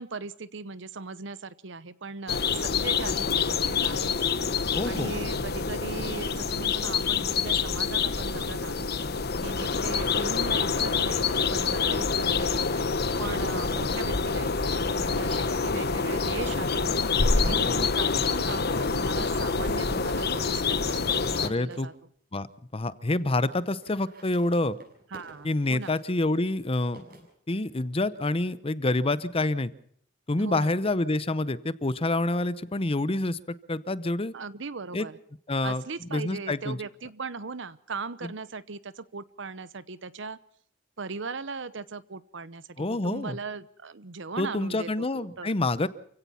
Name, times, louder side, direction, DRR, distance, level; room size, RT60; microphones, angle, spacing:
voice 1, 0.0-4.1 4.9-8.9 9.4-12.9 13.2-16.8 17.4-21.9 25.1-25.9 30.4-30.8 34.3-35.2 35.6-40.4 41.0-45.5, right 4 dB, 65° right, 17 dB, 0.9 m, -38 dB
sound 1, 2.3-21.5, left 5 dB, 55° left, 1.0 m, -27 dB
voice 2, 4.8-5.1 17.4-17.8 21.4-21.9 22.3-22.5 22.7-24.8 25.4-27.1 27.5-29.7 30.3-33.4 33.7-34.3 34.9-35.1 35.5-35.8 36.1-36.8 42.8-43.4 44.4-45.9, left 2 dB, 30° left, 16 dB, 0.8 m, -27 dB
sound 2, 13.7-21.9 22.5-22.6 22.8-22.9 23.1-23.2 23.5-27.8, right 2 dB, 50° right, 6.8 m, -54 dB
28.5 x 16.5 x 5.7 m, 0.63 s
head